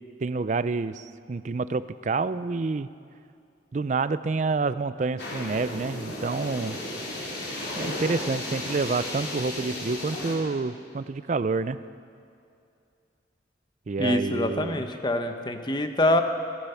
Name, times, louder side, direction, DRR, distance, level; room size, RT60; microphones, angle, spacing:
voice 1, 0.2-2.9 3.7-6.8 7.8-11.8 13.9-14.8, right 4 dB, 40° right, 14 dB, 0.4 m, -28 dB
sound 1, 5.2-10.3, left 1 dB, 70° left, 3.9 m, -34 dB
voice 2, 14.0-16.2, left 1 dB, 25° left, 6 dB, 0.9 m, -25 dB
24.0 x 10.5 x 5.7 m, 2.4 s
head